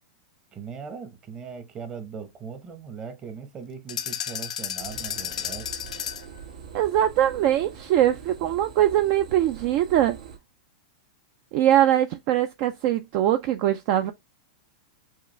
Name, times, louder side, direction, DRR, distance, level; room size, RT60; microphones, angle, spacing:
voice 1, 0.5-5.7, right 6 dB, 25° right, 0.9 m, -39 dB
sound 1, 3.9-6.4, left 9 dB, 90° left, 0.5 m, -32 dB
sound 2, 4.8-10.4, right 7 dB, 85° right, 1.8 m, -43 dB
voice 2, 6.7-10.2 11.5-14.1, right 12 dB, 45° right, 0.4 m, -22 dB
4.7 x 2.4 x 3.2 m
supercardioid pair, 150°, 4 cm